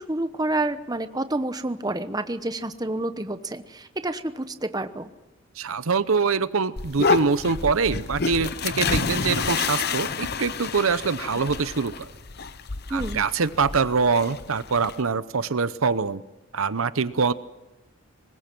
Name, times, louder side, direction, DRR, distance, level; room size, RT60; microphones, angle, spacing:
voice 1, 0.0-5.1 12.9-13.2, right 2 dB, 20° right, 10 dB, 0.9 m, -29 dB
voice 2, 5.6-12.1 12.9-16.2 16.5-17.3, right 5 dB, 75° right, 15 dB, 0.8 m, -24 dB
sound 1, 6.8-15.0, left 4 dB, 50° left, 0.9 m, -29 dB
24.5 x 20.5 x 6.1 m, 1.0 s
head